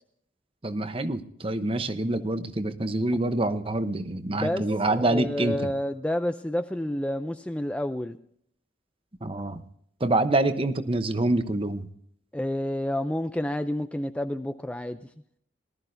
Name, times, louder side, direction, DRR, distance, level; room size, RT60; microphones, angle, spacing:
voice 1, 0.6-5.6 9.2-9.6 10.0-11.9, right 2 dB, 30° right, 10 dB, 0.8 m, -26 dB
voice 2, 4.9-8.2 12.3-15.1, left 1 dB, 5° left, 8 dB, 0.4 m, -29 dB
19.0 x 13.0 x 2.6 m, 0.67 s
head